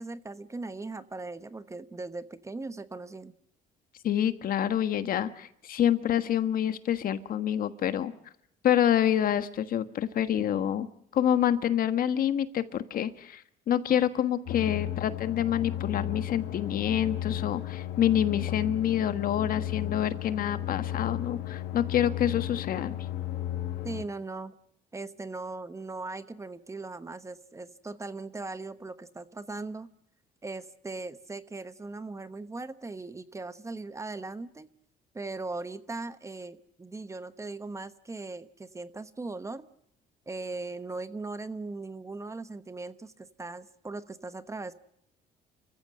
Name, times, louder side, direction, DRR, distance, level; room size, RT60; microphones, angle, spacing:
voice 1, 0.0-3.3 23.8-24.5 24.9-29.9 30.4-34.7 35.1-39.7 40.3-44.7, right 3 dB, 15° right, 12 dB, 1.1 m, -39 dB
voice 2, 4.0-8.1 8.6-10.9 11.1-22.9, left 10 dB, 55° left, 11 dB, 1.5 m, -27 dB
sound 1, 14.5-24.0, left 12 dB, 90° left, 1.8 m, -34 dB
29.0 x 15.0 x 7.8 m, 0.74 s
cardioid pair, 110°, 17 cm